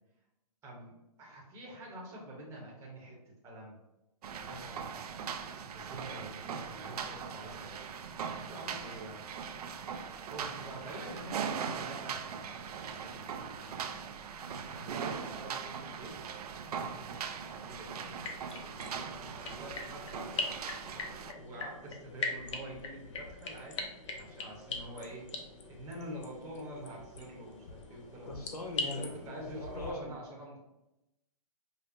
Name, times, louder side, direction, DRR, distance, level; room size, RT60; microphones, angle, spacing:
voice 1, 0.6-3.8 5.5-7.7 8.4-9.2 10.2-14.0 14.7-16.2 16.6-18.2 18.7-20.4 21.3-25.3 25.7-28.5 28.9-30.6, right 1 dB, 15° right, -3 dB, 0.8 m, -47 dB
sound 1, 4.2-21.3, right 6 dB, 75° right, 0.4 m, -40 dB
voice 2, 4.5-4.9 28.3-29.3 29.8-30.1, left 1 dB, 80° left, 2 dB, 1.0 m, -41 dB
sound 2, 18.1-29.9, left 4 dB, 50° left, 0.6 m, -42 dB
5.0 x 2.1 x 2.6 m, 0.91 s
hypercardioid pair, 145°, 20 cm